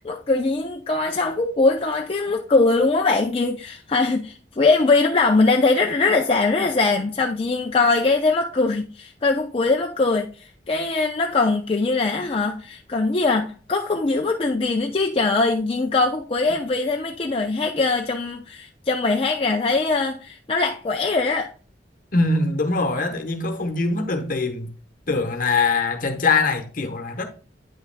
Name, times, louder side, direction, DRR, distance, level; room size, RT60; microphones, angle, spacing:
voice 1, 0.0-21.5, left 3 dB, 35° left, 0.5 m, -21 dB
voice 2, 22.1-24.7 25.1-27.2, left 3 dB, 50° left, 1.1 m, -22 dB
9.2 x 5.8 x 2.2 m
head